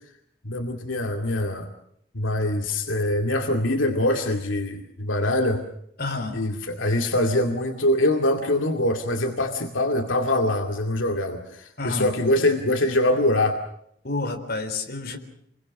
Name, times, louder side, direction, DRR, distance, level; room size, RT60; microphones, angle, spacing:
voice 1, 0.4-1.7 2.1-5.6 6.3-13.6, left 1 dB, 80° left, 4 dB, 2.4 m, -23 dB
voice 2, 6.0-6.4 11.8-12.1 14.0-15.2, left 3 dB, 50° left, 5 dB, 4.0 m, -29 dB
28.5 x 22.5 x 6.4 m, 0.70 s
head